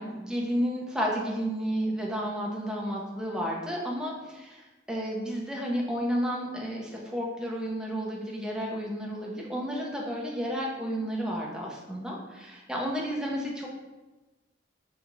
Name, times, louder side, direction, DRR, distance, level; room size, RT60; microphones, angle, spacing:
voice 1, 0.0-13.7, equal, 5° right, -3 dB, 0.7 m, -32 dB
3.8 x 3.3 x 3.0 m, 1.1 s
head